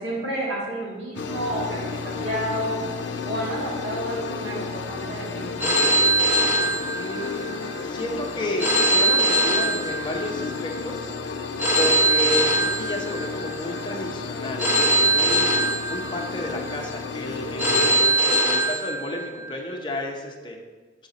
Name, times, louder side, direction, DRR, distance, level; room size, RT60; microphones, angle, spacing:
voice 1, 0.0-2.8 3.3-5.8, equal, 80° right, -6 dB, 2.0 m, -30 dB
sound 1, 1.2-18.0, left 4 dB, 80° left, 0.5 m, -32 dB
Telephone, 5.6-7.5 8.6-10.5 11.6-13.5 14.6-16.5 17.6-19.5, right 1 dB, 10° right, 0.9 m, -21 dB
voice 2, 6.9-11.1 11.7-15.5 15.9-20.6, left 1 dB, 25° left, 0 dB, 0.8 m, -32 dB
7.0 x 4.9 x 4.0 m, 1.3 s
head